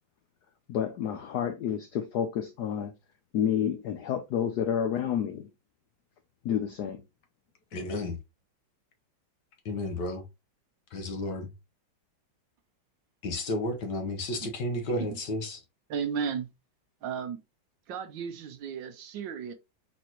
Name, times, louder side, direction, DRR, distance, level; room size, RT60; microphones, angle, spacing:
voice 1, 0.7-2.9 3.3-5.5 6.4-7.0, left 9 dB, 75° left, 0.9 m, -29 dB
voice 2, 7.7-8.1 9.6-10.2 10.9-11.5 13.2-15.6, left 1 dB, 60° left, 1.6 m, -32 dB
voice 3, 15.9-16.5 17.0-17.4 17.9-19.5, right 7 dB, 70° right, 1.3 m, -34 dB
4.2 x 4.1 x 2.9 m
omnidirectional pair, 2.3 m